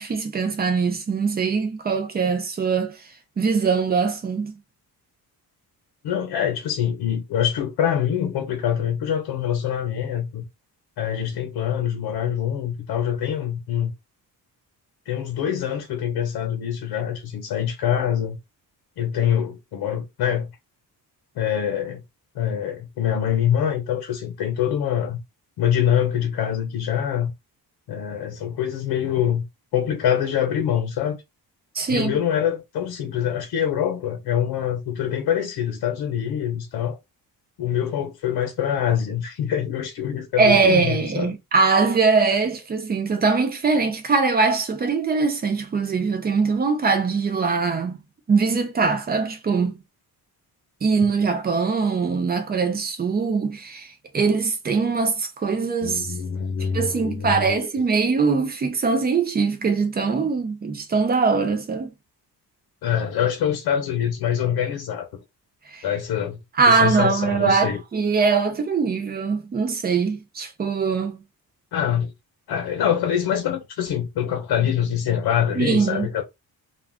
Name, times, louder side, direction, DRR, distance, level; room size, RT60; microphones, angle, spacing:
voice 1, 0.0-4.5 31.7-32.2 40.4-48.0 48.3-49.8 50.8-56.1 56.7-61.9 65.7-65.8 66.6-71.2 75.6-76.1, right 4 dB, 25° right, 0.6 m, -22 dB
voice 2, 6.0-10.4 11.0-13.9 15.1-18.4 19.0-20.5 21.3-22.0 22.3-25.2 25.6-27.3 27.9-29.4 29.7-31.2 31.9-37.0 37.6-41.3 55.8-57.7 62.8-65.2 65.8-66.4 66.7-67.8 71.7-72.1 72.5-76.2, left 9 dB, 80° left, 0.8 m, -24 dB
2.4 x 2.4 x 3.4 m
cardioid pair, 170°, 38 cm